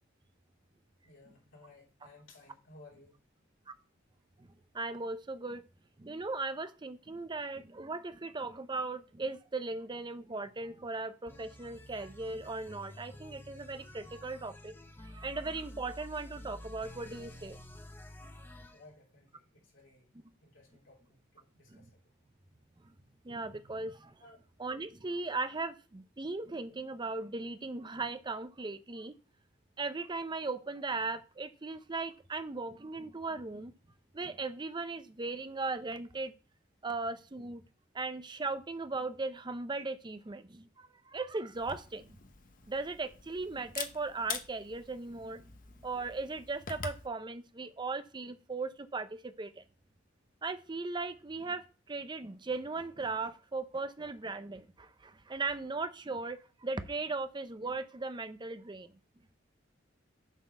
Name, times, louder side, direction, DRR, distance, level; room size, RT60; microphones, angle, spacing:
voice 1, 1.0-3.2 18.7-20.1 20.4-22.1 24.2-24.4, left 2 dB, 80° left, 3.1 m, -58 dB
voice 2, 4.7-5.6 6.0-14.7 15.0-17.6 21.7-21.8 22.8-22.9 23.2-24.2 24.6-29.1 29.8-33.7 34.1-36.3 36.8-37.6 37.9-42.2 42.7-45.5 45.8-49.6 50.4-58.9, right 3 dB, 25° right, 0.6 m, -38 dB
sound 1, 11.3-18.8, left 1 dB, 10° left, 0.8 m, -50 dB
Camera, 41.5-47.1, left 6 dB, 45° left, 0.8 m, -45 dB
7.2 x 4.2 x 5.3 m
head